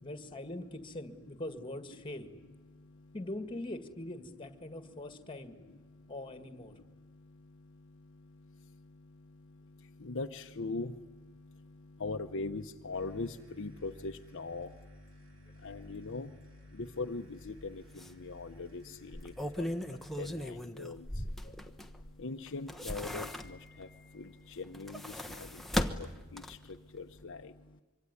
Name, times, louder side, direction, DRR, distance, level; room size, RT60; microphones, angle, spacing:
voice 1, 0.0-2.3 3.1-5.6 6.1-6.7 21.4-21.6, left 1 dB, 25° left, 9 dB, 1.9 m, -42 dB
voice 2, 2.7-3.1 4.9-5.2 5.6-6.1 6.6-27.8, left 3 dB, 60° left, 5 dB, 0.9 m, -43 dB
sound 1, 12.9-20.5, equal, 65° right, 3.5 m, -57 dB
sound 2, 17.4-17.6 18.0-18.1 19.0-22.1 22.5-23.8 24.6-26.8 27.1-27.2, left 1 dB, ahead, 1.1 m, -37 dB
25.5 x 24.0 x 9.7 m, 1.2 s
head